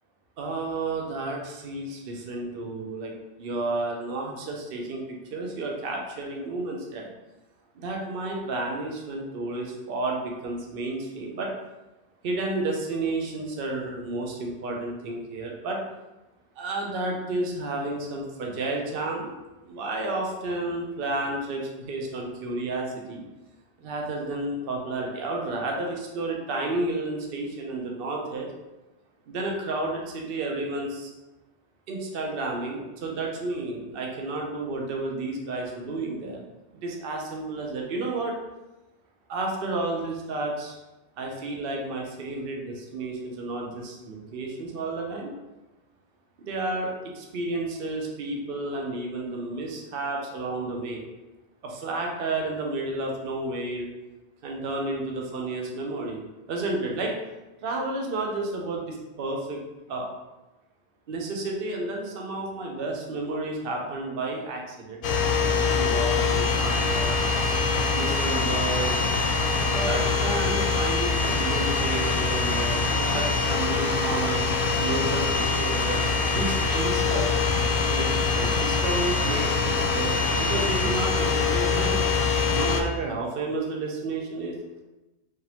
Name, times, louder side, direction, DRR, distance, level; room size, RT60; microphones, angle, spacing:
voice 1, 0.4-3.1 3.4-5.0 5.3-7.1 7.8-11.5 12.2-15.8 16.6-19.4 19.7-23.2 23.8-28.5 29.3-31.1 31.9-36.4 36.7-38.3 39.3-40.8 41.2-45.3 46.4-51.0 51.6-53.9 54.4-56.2 56.5-57.1 57.6-59.6 59.9-60.1 61.1-65.0 65.5-67.1 67.9-69.0 69.6-74.4 74.8-76.0 76.3-77.3 77.9-78.1 78.3-82.0 82.5-84.6, right 2 dB, 60° right, 0 dB, 0.9 m, -31 dB
sound 1, 65.0-82.8, left 4 dB, 60° left, 0.7 m, -24 dB
3.7 x 3.2 x 2.9 m, 1.1 s
omnidirectional pair, 1.1 m